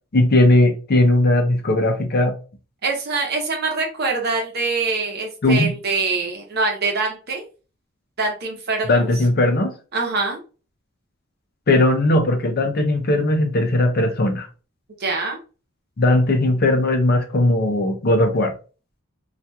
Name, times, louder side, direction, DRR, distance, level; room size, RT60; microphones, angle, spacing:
voice 1, 0.1-2.3 5.4-5.7 8.9-9.7 11.7-14.5 16.0-18.5, left 1 dB, 50° left, 0.5 m, -18 dB
voice 2, 2.8-7.4 8.2-9.1 9.9-10.4 15.0-15.4, right 3 dB, 55° right, 0.8 m, -24 dB
2.8 x 2.4 x 2.3 m
head